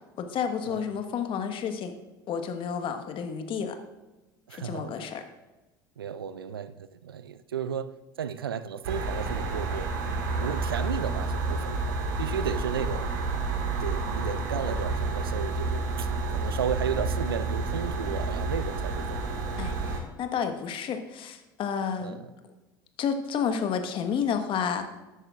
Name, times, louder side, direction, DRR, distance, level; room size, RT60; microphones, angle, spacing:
voice 1, 0.2-1.9 2.3-3.8 4.5-5.2 19.6-22.2 23.0-24.9, left 7 dB, 45° left, 7 dB, 1.4 m, -30 dB
voice 2, 4.5-5.1 6.0-7.9 8.2-9.9 10.4-11.9 12.2-13.1 13.6-19.2 22.0-22.2, right 8 dB, 90° right, 15 dB, 0.5 m, -34 dB
sound 1, 8.8-20.0, right 3 dB, 70° right, 1.9 m, -30 dB
14.0 x 10.5 x 2.5 m, 1.1 s
hypercardioid pair, 70°, 12 cm